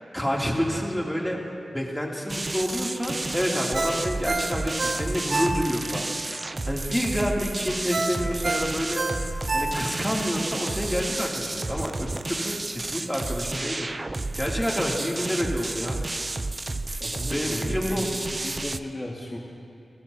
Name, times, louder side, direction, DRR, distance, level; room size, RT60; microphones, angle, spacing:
voice 1, 0.1-1.4 1.7-6.1 6.6-9.0 9.5-13.9 14.4-16.0 17.3-18.1, equal, 5° left, -2 dB, 2.8 m, -28 dB
sound 1, 2.3-18.8, right 2 dB, 35° right, 0.5 m, -31 dB
Ringtone, 3.7-6.0 6.4-6.5 7.9-10.2 10.6-10.7, right 2 dB, 55° right, 1.0 m, -28 dB
voice 2, 17.0-19.4, left 1 dB, 30° left, -3 dB, 2.0 m, -36 dB
28.0 x 16.0 x 2.8 m, 2.5 s
cardioid pair, 55°, 0 cm